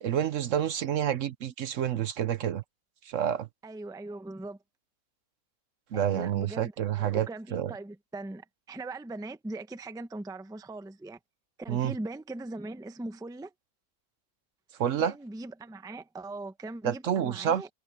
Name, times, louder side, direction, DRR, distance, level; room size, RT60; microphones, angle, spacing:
voice 1, 0.0-2.6 3.1-3.5 5.9-7.7 11.7-11.9 14.8-15.1 16.8-17.6, right 9 dB, 65° right, 1.0 m, -28 dB
voice 2, 3.6-4.6 5.9-11.2 11.6-13.5 15.0-17.7, right 2 dB, 5° right, 0.6 m, -40 dB
omnidirectional pair, 1.5 m